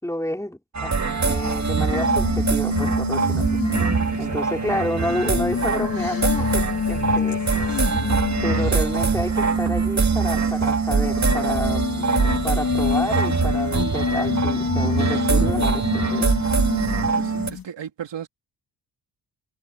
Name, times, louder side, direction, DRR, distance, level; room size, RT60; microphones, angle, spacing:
voice 1, 0.0-0.9 1.2-3.4 4.2-7.4 8.4-12.1 12.4-16.4, left 1 dB, 5° left, 4.9 m, -30 dB
sound 1, 0.7-17.5, right 4 dB, 40° right, 2.2 m, -23 dB
sound 2, 1.3-17.6, left 6 dB, 50° left, 2.1 m, -28 dB
voice 2, 4.1-4.7 17.2-18.3, right 9 dB, 75° right, 3.1 m, -36 dB
cardioid pair, 95°, 44 cm